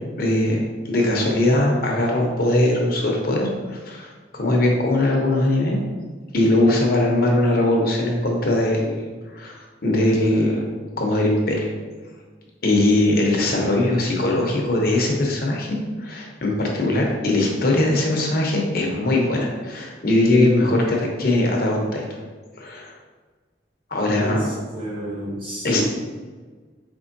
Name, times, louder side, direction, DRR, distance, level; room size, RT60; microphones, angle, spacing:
voice 1, 0.2-0.6 0.8-5.8 6.3-9.0 9.3-10.6 11.0-11.7 12.6-22.0 22.6-22.9 23.9-24.5 25.6-25.8, left 1 dB, 55° left, 0 dB, 0.7 m, -20 dB
voice 2, 24.2-25.8, equal, 30° right, -5 dB, 0.9 m, -30 dB
4.3 x 3.2 x 2.6 m, 1.4 s
head